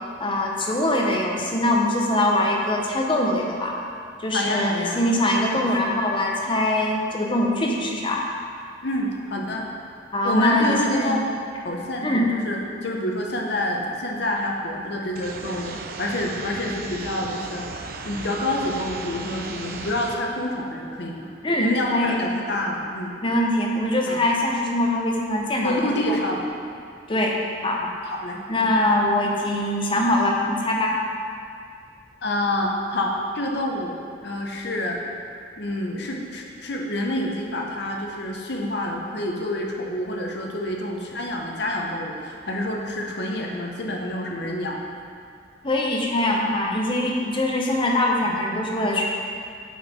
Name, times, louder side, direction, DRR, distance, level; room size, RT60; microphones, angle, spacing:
voice 1, 0.2-3.8 4.2-8.2 10.1-11.2 12.0-12.3 21.4-22.2 23.2-26.3 27.1-27.4 27.6-27.8 28.5-30.9 39.4-39.5 45.6-49.0, left 1 dB, 25° left, -1 dB, 0.8 m, -23 dB
voice 2, 4.3-5.1 5.4-5.6 8.8-9.7 10.2-11.2 11.6-21.3 21.6-23.1 24.1-24.2 25.6-26.4 27.8-28.7 32.2-34.0 34.2-35.0 35.6-44.8, left 1 dB, 60° left, 0 dB, 0.9 m, -28 dB
sound 1, 15.2-20.2, right 3 dB, 50° right, 0.5 m, -36 dB
8.4 x 4.4 x 4.2 m, 2.3 s
head